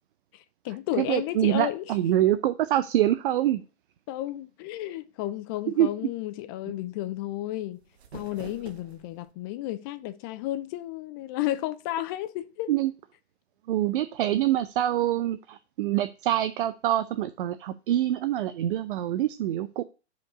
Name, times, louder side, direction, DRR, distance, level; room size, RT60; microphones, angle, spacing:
voice 1, 0.3-1.9 4.1-7.8 8.1-12.7, left 14 dB, 20° left, 0.3 m, -32 dB
voice 2, 1.0-3.6 5.8-5.9 12.7-12.9 13.7-19.8, right 12 dB, 50° right, 0.6 m, -25 dB
sound 1, 7.7-9.3, right 7 dB, 70° right, 1.0 m, -46 dB
5.2 x 5.1 x 6.2 m
figure-of-eight pair, 105°, 34 cm